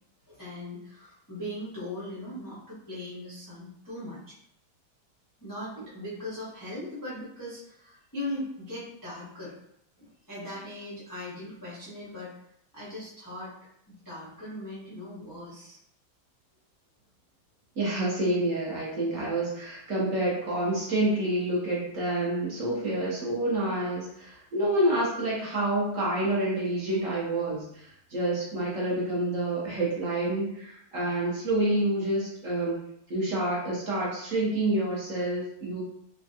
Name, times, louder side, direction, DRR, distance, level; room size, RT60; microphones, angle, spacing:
voice 1, 0.3-4.3 5.4-9.5 10.0-12.3 12.7-13.5 14.0-15.8, left 1 dB, 25° left, -9 dB, 0.4 m, -39 dB
voice 2, 17.8-32.8 33.1-35.8, right 1 dB, 55° right, -6 dB, 1.1 m, -28 dB
3.3 x 2.2 x 2.7 m, 0.73 s
omnidirectional pair, 1.9 m